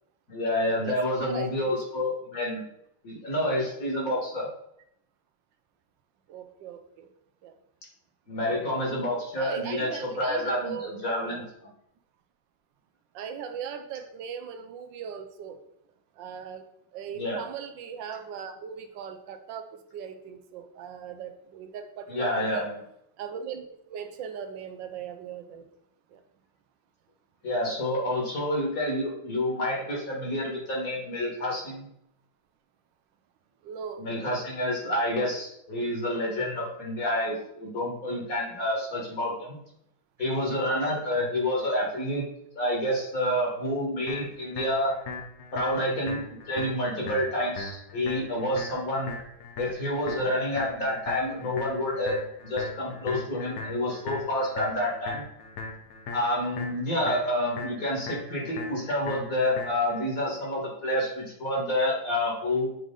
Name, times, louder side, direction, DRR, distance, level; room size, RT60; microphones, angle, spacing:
voice 1, 0.3-2.6 3.0-4.5 8.3-11.4 17.1-17.4 22.1-22.8 27.4-31.9 34.0-39.6 40.2-42.2 42.5-44.9 45.5-46.2 46.5-49.1 49.6-52.2 52.4-55.2 56.1-62.7, left 1 dB, 45° left, -3 dB, 2.0 m, -28 dB
voice 2, 0.8-1.7 6.3-7.1 7.4-7.5 9.4-11.5 13.1-15.6 16.2-16.7 16.9-22.7 23.2-25.7 26.1-26.2 33.6-34.0, right 7 dB, 75° right, 8 dB, 1.3 m, -39 dB
sound 1, 44.1-60.1, left 3 dB, 60° left, 1.3 m, -40 dB
7.7 x 3.2 x 3.8 m, 0.74 s
omnidirectional pair, 2.1 m